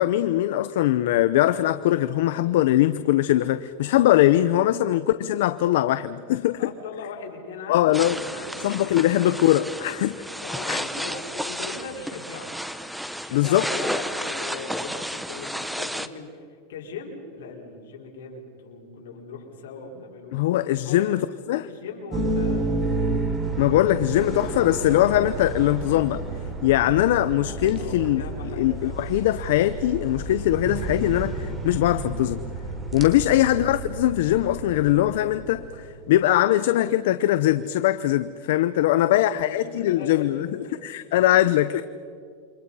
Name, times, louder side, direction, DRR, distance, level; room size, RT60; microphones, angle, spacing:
voice 1, 0.0-6.7 7.7-8.2 8.6-10.1 10.7-10.8 13.3-13.7 20.3-21.2 21.5-21.7 23.6-26.2 26.6-32.4 32.9-40.5 40.8-41.8, left 14 dB, 75° left, 0.7 m, -21 dB
voice 2, 6.6-9.3 9.6-9.8 10.4-12.5 13.2-20.3 20.6-21.3 21.6-22.7 27.8-29.0 33.3-33.6 38.8-40.8 41.2-41.5, left 4 dB, 90° left, 4.8 m, -39 dB
sound 1, 7.9-16.1, equal, ahead, 0.8 m, -32 dB
sound 2, 22.1-35.8, right 3 dB, 20° right, 3.8 m, -31 dB
28.5 x 25.0 x 5.7 m
supercardioid pair, 145°, 0 cm